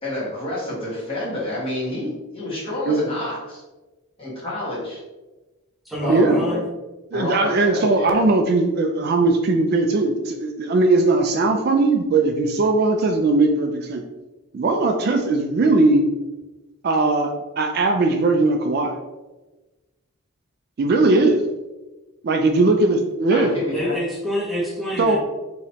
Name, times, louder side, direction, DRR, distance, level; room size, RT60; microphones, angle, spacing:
voice 1, 0.0-3.6 4.2-5.0 6.0-6.6 7.1-8.2 23.3-23.9, left 1 dB, 25° left, -7 dB, 1.4 m, -29 dB
voice 2, 5.8-6.6 23.4-25.2, equal, ahead, -6 dB, 0.8 m, -27 dB
voice 3, 7.1-14.0 14.5-16.1 16.8-18.9 20.8-21.4 22.2-23.5 25.0-25.2, right 3 dB, 45° right, 4 dB, 0.3 m, -19 dB
4.9 x 3.0 x 2.8 m, 1.1 s
head